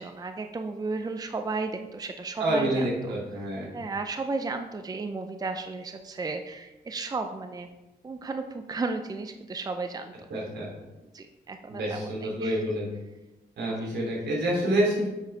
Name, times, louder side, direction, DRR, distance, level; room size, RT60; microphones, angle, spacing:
voice 1, 0.0-3.1 3.7-7.7 8.0-10.1 11.1-12.7 13.8-13.9, right 3 dB, 20° right, 7 dB, 0.5 m, -34 dB
voice 2, 2.4-3.7 10.3-10.7 11.7-12.8 13.6-15.1, right 1 dB, 80° right, -3 dB, 2.8 m, -27 dB
7.4 x 6.5 x 3.4 m, 1.0 s
cardioid pair, 80°, 17 cm